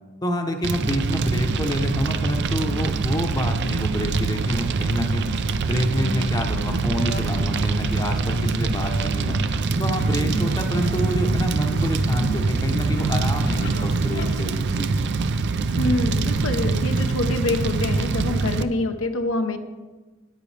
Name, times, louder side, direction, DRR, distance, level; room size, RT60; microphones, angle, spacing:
voice 1, 0.2-5.3 5.7-9.4 9.8-14.9, equal, 20° left, 4 dB, 0.8 m, -27 dB
Fire, 0.6-18.6, right 4 dB, 55° right, 0.4 m, -24 dB
sound 1, 5.3-14.2, equal, 60° left, 1.8 m, -33 dB
voice 2, 15.8-19.6, left 2 dB, 75° left, 6 dB, 0.9 m, -25 dB
13.5 x 9.4 x 3.3 m, 1.3 s
head